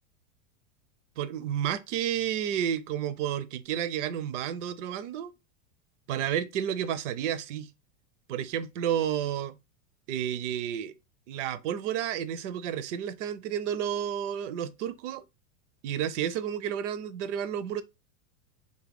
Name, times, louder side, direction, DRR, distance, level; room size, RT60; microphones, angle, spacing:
voice 1, 1.2-5.3 6.1-7.7 8.3-9.6 10.1-10.9 11.3-15.2 15.8-17.8, right 9 dB, 60° right, 0.5 m, -31 dB
3.5 x 2.1 x 3.5 m
supercardioid pair, 175°, 42 cm